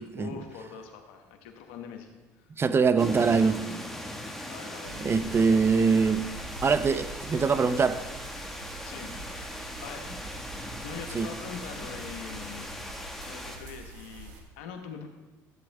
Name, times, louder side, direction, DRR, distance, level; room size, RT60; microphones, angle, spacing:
voice 1, 0.0-2.5 4.5-5.0 8.8-10.3 10.8-12.8 13.3-15.1, left 7 dB, 85° left, 5 dB, 1.3 m, -43 dB
voice 2, 2.6-3.6 5.0-6.3 6.6-8.0 11.1-11.3, right 5 dB, 30° right, 12 dB, 0.6 m, -23 dB
sound 1, 3.0-13.6, left 1 dB, 5° left, 1.7 m, -39 dB
sound 2, 4.8-14.4, right 2 dB, 85° right, 1.5 m, -44 dB
13.5 x 8.3 x 3.5 m, 1.2 s
supercardioid pair, 80°, 8 cm